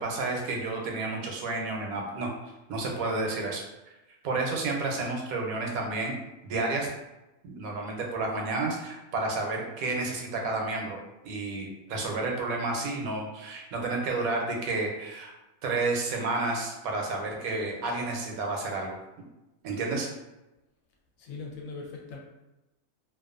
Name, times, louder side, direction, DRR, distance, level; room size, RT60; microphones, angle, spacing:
voice 1, 0.0-2.3 2.7-3.6 4.2-6.1 6.4-6.9 7.4-11.0 11.2-15.3 15.6-19.0 19.6-20.1, right 3 dB, 85° right, 0 dB, 1.1 m, -31 dB
voice 2, 21.2-22.2, left 4 dB, 75° left, 0 dB, 0.9 m, -40 dB
2.5 x 2.3 x 2.4 m, 0.99 s
omnidirectional pair, 1.5 m